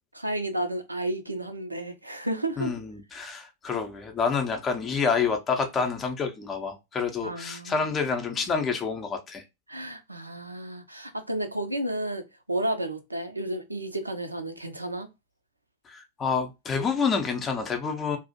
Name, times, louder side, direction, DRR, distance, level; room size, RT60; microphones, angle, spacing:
voice 1, 0.1-2.7 7.2-7.9 9.7-15.1, right 1 dB, 85° right, 0.4 m, -32 dB
voice 2, 2.6-9.4 15.9-18.2, left 5 dB, 20° left, 0.5 m, -28 dB
2.4 x 2.0 x 2.6 m
figure-of-eight pair, 90°, 0 cm